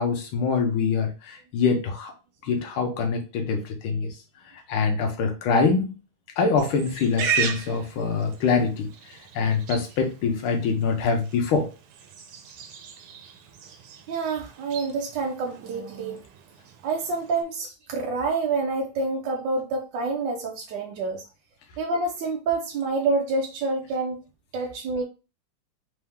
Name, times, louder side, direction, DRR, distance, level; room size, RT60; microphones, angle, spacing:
voice 1, 0.0-2.1 2.4-4.1 4.7-5.9 6.4-8.9 9.3-11.7, left 5 dB, 75° left, 4 dB, 1.7 m, -24 dB
Livestock farm animals working animals, 6.6-17.4, right 7 dB, 85° right, 1.6 m, -36 dB
voice 2, 14.1-16.2 16.8-21.2 21.8-24.2 24.5-25.0, right 3 dB, 70° right, 1 dB, 1.2 m, -27 dB
4.5 x 2.7 x 3.5 m, 0.32 s
omnidirectional pair, 2.4 m